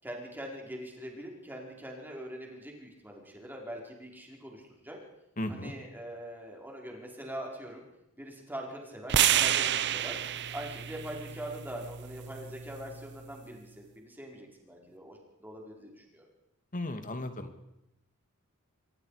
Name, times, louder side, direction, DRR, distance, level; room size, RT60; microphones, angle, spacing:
voice 1, 0.0-5.0 5.5-7.8 8.2-10.2 10.5-16.2, right 1 dB, 10° right, -1 dB, 4.8 m, -43 dB
voice 2, 5.4-5.7 16.7-17.5, left 1 dB, 40° left, 8 dB, 2.3 m, -35 dB
sound 1, 9.1-13.3, right 10 dB, 55° right, 0.7 m, -30 dB
26.0 x 22.5 x 5.0 m, 0.86 s
head